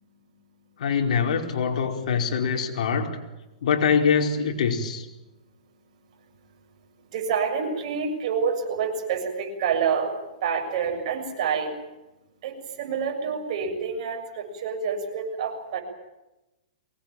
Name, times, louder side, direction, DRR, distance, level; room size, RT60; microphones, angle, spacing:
voice 1, 0.8-3.2 3.6-5.1, left 6 dB, 65° left, 2 dB, 4.8 m, -24 dB
voice 2, 7.1-10.1 10.4-11.7 12.4-15.8, right 6 dB, 55° right, 3 dB, 7.1 m, -27 dB
23.5 x 20.0 x 9.1 m, 1.0 s
hypercardioid pair, 140°, 4 cm